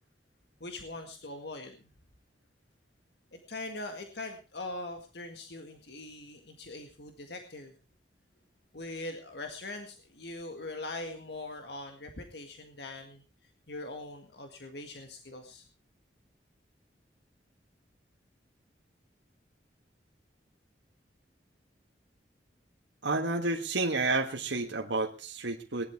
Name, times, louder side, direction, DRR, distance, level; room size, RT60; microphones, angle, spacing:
voice 1, 0.6-1.8 3.3-7.7 8.7-13.2 13.7-15.6, left 2 dB, 65° left, 5 dB, 1.9 m, -42 dB
voice 2, 23.0-25.9, right 3 dB, 80° right, 2 dB, 1.5 m, -30 dB
19.5 x 11.5 x 4.6 m, 0.35 s
head